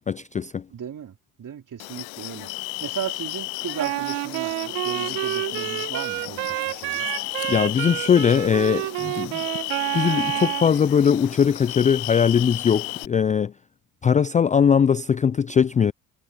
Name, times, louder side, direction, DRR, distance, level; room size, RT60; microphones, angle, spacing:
voice 1, 0.1-0.6 7.5-9.4 9.9-13.5 14.0-15.9, left 7 dB, 20° left, 0.3 m, -20 dB
voice 2, 0.7-2.5 2.8-7.1, right 9 dB, 45° right, 3.8 m, -35 dB
sound 1, 1.8-13.1, left 29 dB, 80° left, 0.7 m, -33 dB
Wind instrument woodwind instrument, 3.8-10.7, right 23 dB, 80° right, 1.5 m, -28 dB
hypercardioid pair, 70°, 45 cm